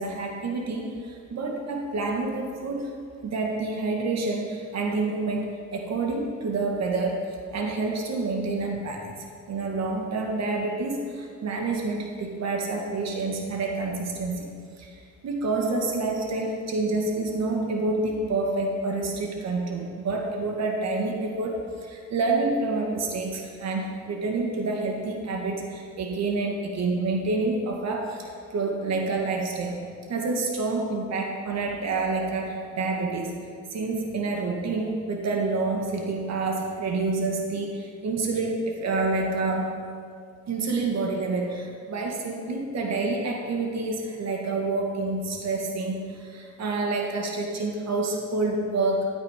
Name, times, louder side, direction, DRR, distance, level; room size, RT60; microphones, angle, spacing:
voice 1, 0.0-2.9 3.2-7.3 7.5-14.5 14.8-29.8 30.1-33.3 33.7-39.7 40.5-49.1, right 3 dB, 60° right, 1 dB, 1.8 m, -28 dB
13.0 x 9.0 x 5.1 m, 2.1 s
cardioid pair, 90°, 30 cm